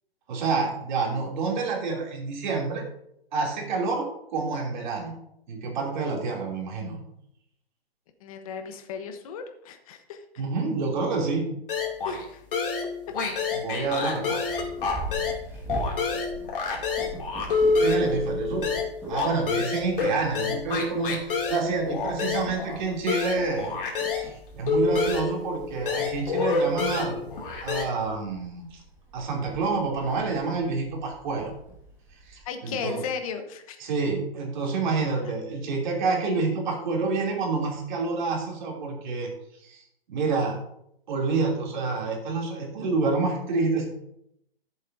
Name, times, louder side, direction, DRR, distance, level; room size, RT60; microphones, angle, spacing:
voice 1, 0.3-2.8 3.3-5.2 5.5-7.0 10.4-11.5 13.5-14.4 17.8-18.8 19.1-23.7 24.1-27.3 27.6-28.8 29.1-31.5 32.3-33.0 33.8-39.3 39.6-39.8 40.1-40.5 41.1-43.9, right 4 dB, 50° right, -1 dB, 2.8 m, -28 dB
voice 2, 8.2-10.4 12.0-12.4 13.7-14.0 32.4-33.8 35.2-35.3, left 6 dB, 35° left, 7 dB, 1.1 m, -36 dB
sound 1, 11.7-12.2 12.5-15.4 15.7-24.3 24.7-27.8, left 4 dB, 60° left, 2.6 m, -27 dB
Purr, 14.5-32.4, right 2 dB, 5° right, 1.8 m, -42 dB
13.5 x 7.5 x 2.7 m, 0.76 s
hypercardioid pair, 150°, 31 cm